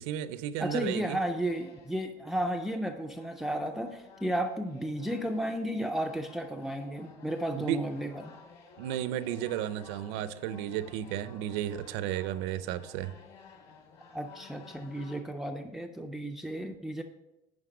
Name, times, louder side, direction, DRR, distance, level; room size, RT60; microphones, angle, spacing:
voice 1, 0.0-1.2 7.6-7.8 8.8-13.2, right 11 dB, 85° right, 0.6 m, -33 dB
sound 1, 0.6-15.2, left 5 dB, 45° left, 1.5 m, -54 dB
voice 2, 0.6-8.3 14.1-17.0, right 1 dB, ahead, 0.3 m, -33 dB
9.7 x 5.3 x 5.0 m
cardioid pair, 175°, 14 cm